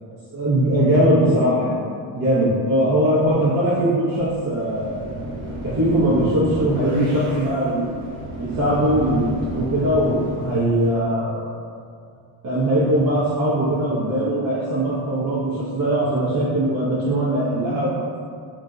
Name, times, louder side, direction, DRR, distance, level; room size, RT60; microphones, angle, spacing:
voice 1, 0.3-1.8 2.1-5.0 5.6-7.9 8.4-11.4 12.4-18.0, right 1 dB, 45° right, -9 dB, 0.8 m, -20 dB
sound 1, 4.2-10.9, right 1 dB, 70° right, 1.0 m, -33 dB
2.5 x 2.1 x 3.6 m, 2.2 s
cardioid pair, 115°, 47 cm